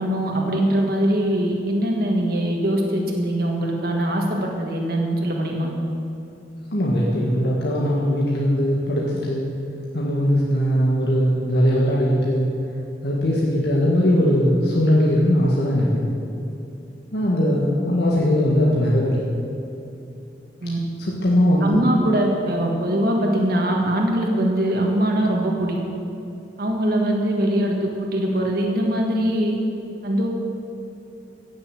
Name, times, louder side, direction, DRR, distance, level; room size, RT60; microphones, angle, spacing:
voice 1, 0.0-5.7 20.6-20.8 21.6-25.8 26.6-29.5 30.0-30.3, right 1 dB, 55° right, 0 dB, 1.7 m, -22 dB
voice 2, 6.7-9.5 9.9-12.5 13.0-16.1 17.1-19.3 21.0-21.8, equal, 65° left, -5 dB, 1.7 m, -20 dB
16.5 x 6.9 x 7.6 m, 2.8 s
head